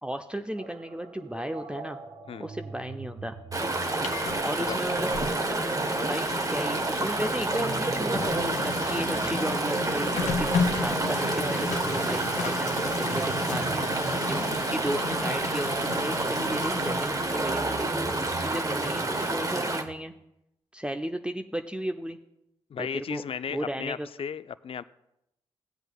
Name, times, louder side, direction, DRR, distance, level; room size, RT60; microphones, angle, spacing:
voice 1, 0.0-2.0 2.4-3.4 4.4-5.1 6.0-8.3 8.6-13.8 14.3-20.1 20.7-22.2 22.8-23.2 23.5-24.1, right 1 dB, 10° right, 5 dB, 0.6 m, -34 dB
sound 1, 0.5-20.0, right 4 dB, 70° right, 1.1 m, -44 dB
Chatter / Stream, 3.5-19.8, right 2 dB, 25° right, 1.0 m, -29 dB
Printer, 3.7-19.5, left 5 dB, 65° left, 1.0 m, -35 dB
voice 2, 8.3-8.6 13.6-14.1 22.7-24.8, left 7 dB, 45° left, 15 dB, 0.4 m, -36 dB
15.0 x 7.9 x 2.3 m, 0.83 s
hypercardioid pair, 45°, 13 cm